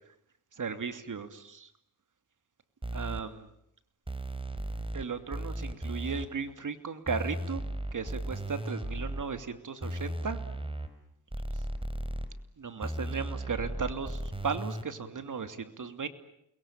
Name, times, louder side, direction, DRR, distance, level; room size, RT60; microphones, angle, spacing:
voice 1, 0.6-1.7 2.9-3.5 4.9-7.6 7.9-10.4 12.6-16.1, right 5 dB, 55° right, 10 dB, 2.8 m, -36 dB
sound 1, 2.8-3.2 4.1-5.0 5.3-6.3 7.1-9.2 9.8-10.9 11.3-12.3 12.8-14.8, right 1 dB, 15° right, 4.3 m, -35 dB
29.0 x 22.0 x 8.9 m, 0.76 s
cardioid pair, 60°, 38 cm